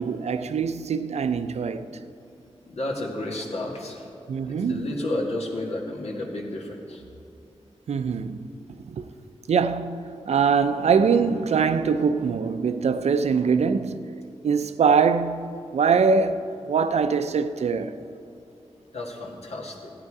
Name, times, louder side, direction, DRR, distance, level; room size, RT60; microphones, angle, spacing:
voice 1, 0.0-1.9 4.3-4.9 7.9-8.5 8.8-9.1 9.5-14.0 14.4-18.0, right 5 dB, 85° right, 0.5 m, -23 dB
voice 2, 2.7-4.1 4.7-7.0 18.9-19.9, left 1 dB, 75° left, 1.9 m, -31 dB
15.5 x 9.4 x 4.8 m
wide cardioid pair, 115°, 11 cm